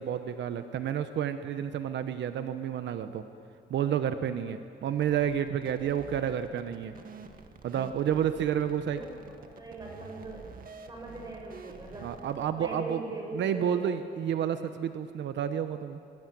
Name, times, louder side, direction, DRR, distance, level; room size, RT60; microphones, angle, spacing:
voice 1, 0.0-3.2 3.7-6.9 7.6-9.0 12.0-13.0 13.3-16.0, right 9 dB, 85° right, 9 dB, 1.1 m, -30 dB
sound 1, 5.0-12.5, right 5 dB, 50° right, 1.9 m, -49 dB
voice 2, 9.5-10.5 10.9-12.1 12.6-13.9, right 2 dB, 20° right, -1 dB, 7.8 m, -40 dB
26.5 x 22.5 x 9.4 m, 2.4 s
wide cardioid pair, 155°, 18 cm